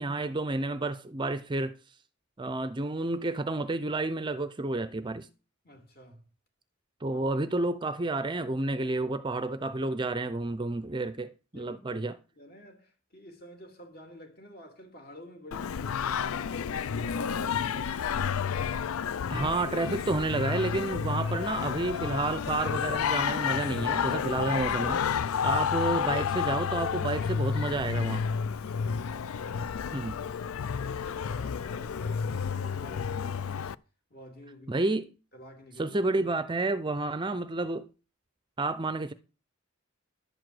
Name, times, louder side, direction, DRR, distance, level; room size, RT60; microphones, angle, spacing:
voice 1, 0.0-1.7 2.4-5.3 7.0-12.2 19.3-28.3 29.9-30.2 34.7-35.1 35.8-37.9 38.6-39.1, right 2 dB, 20° right, 0.5 m, -30 dB
voice 2, 5.6-6.2 7.1-7.2 7.5-7.6 10.9-11.0 11.5-12.0 12.3-18.5 19.2-19.5 28.7-29.4 30.6-33.6 34.1-34.9 35.3-36.0, equal, 45° left, 2.9 m, -50 dB
Singing, 15.5-33.7, left 7 dB, 85° left, 0.4 m, -30 dB
11.0 x 4.9 x 7.7 m
head